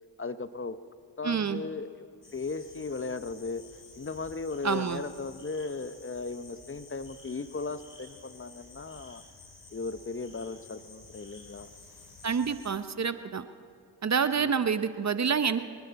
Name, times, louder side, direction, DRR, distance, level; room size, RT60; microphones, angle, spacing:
voice 1, 0.2-0.8 1.2-3.6 4.0-9.2 9.7-11.7 14.3-14.8, left 3 dB, 25° left, 12 dB, 0.9 m, -37 dB
voice 2, 1.2-1.6 4.6-5.0 12.2-13.4 14.0-15.6, right 6 dB, 35° right, 12 dB, 0.8 m, -27 dB
sound 1, 2.2-12.7, left 3 dB, 40° left, 4.1 m, -52 dB
28.0 x 11.0 x 4.2 m, 2.5 s
supercardioid pair, 45°, 48 cm